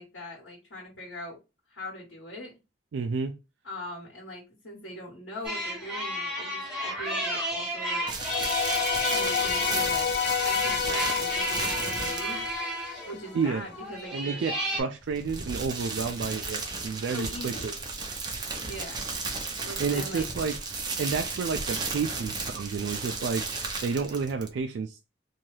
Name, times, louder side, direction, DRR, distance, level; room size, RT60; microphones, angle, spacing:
voice 1, 0.0-1.4 1.7-2.5 3.6-8.0 9.1-10.1 10.4-12.4 13.1-14.4 17.1-17.7 18.6-19.0 19.6-20.3, left 1 dB, 85° left, 1.3 m, -41 dB
voice 2, 2.9-3.3 13.3-13.6 14.1-17.7 19.8-20.5 21.0-23.4 23.8-25.0, right 5 dB, 75° right, 0.3 m, -30 dB
sound 1, 5.4-14.8, right 1 dB, 5° right, 1.1 m, -33 dB
sound 2, 8.1-12.6 15.0-24.6, right 4 dB, 25° right, 0.6 m, -34 dB
sound 3, 8.2-13.4, left 8 dB, 60° left, 0.4 m, -29 dB
2.7 x 2.3 x 3.1 m
head